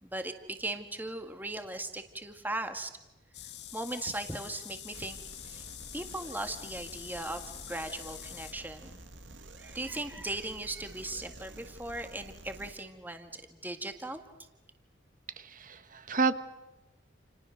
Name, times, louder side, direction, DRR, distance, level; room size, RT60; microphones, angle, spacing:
voice 1, 0.0-2.9 3.7-5.2 5.4-5.7 5.9-9.0 9.6-14.2, right 2 dB, 10° right, 6 dB, 1.8 m, -38 dB
sound 1, 3.3-8.5, left 12 dB, 60° left, 1.7 m, -46 dB
sound 2, 4.9-12.7, right 2 dB, 70° right, 2.6 m, -50 dB
voice 2, 15.4-16.3, right 4 dB, 45° right, 11 dB, 1.4 m, -30 dB
30.0 x 29.5 x 6.5 m, 1.0 s
head